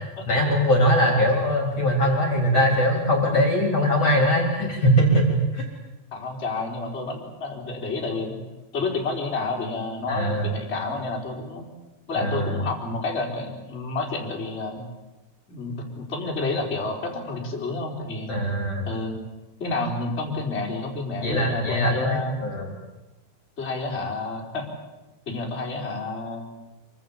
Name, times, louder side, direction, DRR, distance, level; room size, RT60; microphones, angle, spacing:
voice 1, 0.3-5.6 10.1-10.5 12.2-12.6 18.3-18.9 21.2-22.7, equal, 35° left, 1 dB, 4.2 m, -21 dB
voice 2, 6.1-8.4 8.7-11.7 12.1-14.9 15.5-18.4 18.9-19.2 19.6-22.3 23.6-24.7 25.3-26.5, left 3 dB, 15° left, -1 dB, 4.0 m, -30 dB
26.5 x 24.5 x 7.3 m, 1.0 s
omnidirectional pair, 4.9 m